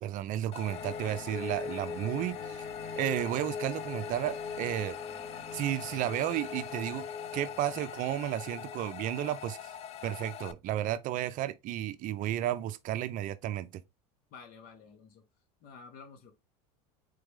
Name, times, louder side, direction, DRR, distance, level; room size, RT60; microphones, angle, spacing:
voice 1, 0.0-2.7 3.0-5.0 5.5-7.1 7.3-9.7 10.0-13.8, right 12 dB, 45° right, 0.5 m, -33 dB
sound 1, 0.5-10.5, left 10 dB, 35° left, 0.3 m, -43 dB
sound 2, 0.7-9.1 9.4-9.5, left 5 dB, 15° left, 0.9 m, -42 dB
voice 2, 14.3-15.2 15.6-16.3, left 5 dB, 50° left, 1.3 m, -51 dB
4.0 x 3.2 x 3.3 m
supercardioid pair, 115°, 19 cm